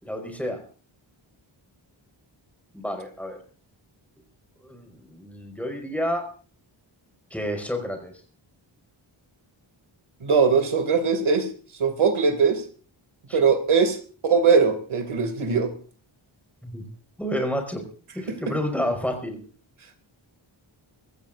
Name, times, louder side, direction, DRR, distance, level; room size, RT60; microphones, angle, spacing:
voice 1, 0.0-0.6 2.7-3.4 4.6-6.3 7.3-8.1 13.3-13.4 16.6-16.8 17.2-17.9 18.1-19.4, equal, 5° left, 5.0 m, -30 dB
voice 2, 10.2-11.5 11.8-12.6 13.3-15.7 18.3-18.5, right 5 dB, 90° right, 2.5 m, -21 dB
24.0 x 15.0 x 2.6 m
wide cardioid pair, 115°, 48 cm